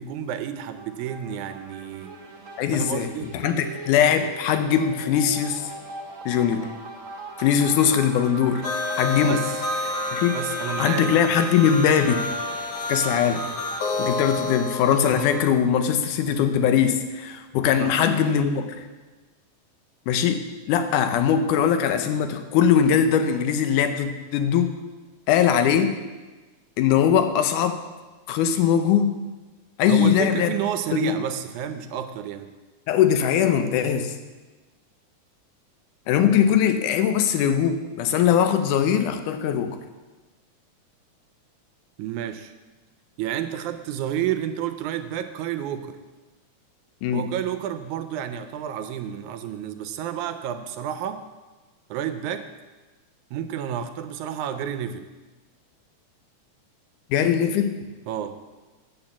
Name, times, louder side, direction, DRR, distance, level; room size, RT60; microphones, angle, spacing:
voice 1, 0.0-2.2 2.7-3.3 9.3-9.5 10.3-11.1 17.8-18.0 29.9-32.5 42.0-42.5 43.2-46.0 47.1-51.2 51.9-52.5 53.3-55.1 58.1-58.4, right 9 dB, 80° right, 9 dB, 2.0 m, -30 dB
sound 1, 0.8-14.5, right 3 dB, 55° right, 0.8 m, -40 dB
voice 2, 2.6-3.1 3.3-5.7 6.3-6.7 7.4-8.6 8.9-9.4 10.1-10.4 10.8-12.2 12.9-13.4 14.0-18.8 20.1-24.7 25.3-26.0 26.8-27.8 28.3-29.2 29.8-30.5 30.9-31.1 32.9-34.2 36.1-39.8 47.0-47.3 57.1-57.8, left 8 dB, 80° left, 9 dB, 2.3 m, -21 dB
sound 2, 8.6-15.5, left 2 dB, 65° left, 1.6 m, -29 dB
8.7 x 8.1 x 7.2 m, 1.2 s
omnidirectional pair, 3.6 m